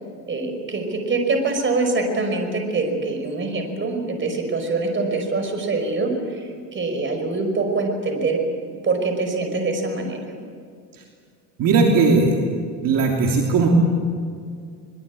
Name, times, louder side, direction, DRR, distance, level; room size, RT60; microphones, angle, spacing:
voice 1, 0.3-8.4 8.8-10.2, right 3 dB, 30° right, 5 dB, 5.4 m, -24 dB
voice 2, 11.6-12.4 12.8-13.7, right 4 dB, 55° right, 0 dB, 3.3 m, -18 dB
23.5 x 22.0 x 8.5 m, 2.2 s
cardioid pair, 125°, 39 cm